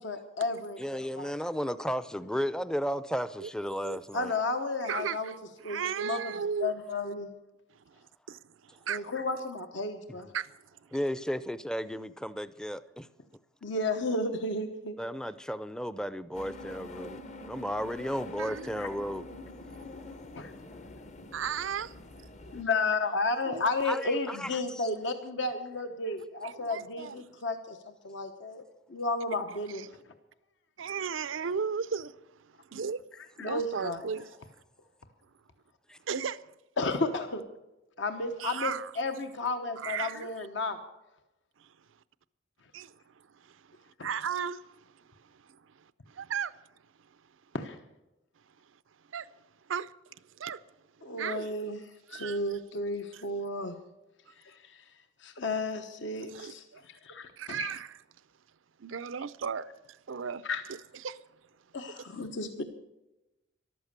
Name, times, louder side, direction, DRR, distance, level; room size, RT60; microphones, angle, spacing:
voice 1, 0.0-1.3 4.1-5.3 5.6-7.3 8.9-10.3 13.6-15.0 18.8-18.9 20.3-20.5 22.5-28.6 28.9-29.9 33.4-34.0 36.8-37.4 38.0-40.8 47.5-47.8 51.0-51.8 52.1-53.8 54.4-54.8 55.2-57.7 60.4-60.6 61.7-62.6, left 2 dB, 65° left, 1.1 m, -33 dB
voice 2, 0.8-4.3 10.1-10.2 10.9-13.1 15.0-17.2 17.5-19.2 23.8-24.9 33.5-33.6, equal, 5° left, 0.5 m, -34 dB
voice 3, 4.8-5.3 5.6-6.7 8.3-8.4 8.9-9.0 10.3-10.5 18.4-18.7 21.3-21.9 23.5-23.6 26.4-27.2 29.8-29.9 30.8-32.2 32.7-33.0 33.4-34.3 36.1-36.4 38.4-38.9 39.8-40.3 42.7-42.9 44.0-44.6 46.1-46.5 49.1-49.3 49.7-49.9 50.4-50.6 51.2-51.5 52.1-52.4 53.1-53.2 56.3-56.8 57.4-57.9 58.8-59.7 60.1-60.4 61.0-61.2, right 7 dB, 85° right, 0.6 m, -34 dB
sound 1, 16.3-22.6, left 2 dB, 35° left, 0.9 m, -45 dB
14.0 x 12.0 x 6.7 m
head